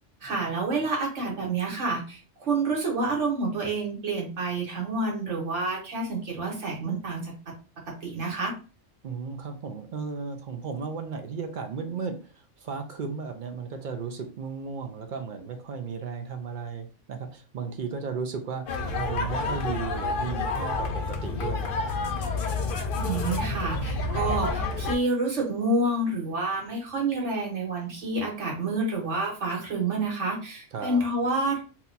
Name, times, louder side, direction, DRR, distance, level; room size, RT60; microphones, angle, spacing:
voice 1, 0.2-7.5 7.9-8.5 23.0-31.6, right 2 dB, 80° right, -1 dB, 1.5 m, -28 dB
voice 2, 9.0-21.9 30.7-31.0, right 5 dB, 55° right, 5 dB, 0.6 m, -35 dB
sound 1, 18.7-24.9, left 3 dB, 55° left, 0.7 m, -29 dB
2.8 x 2.2 x 3.9 m, 0.35 s
omnidirectional pair, 1.2 m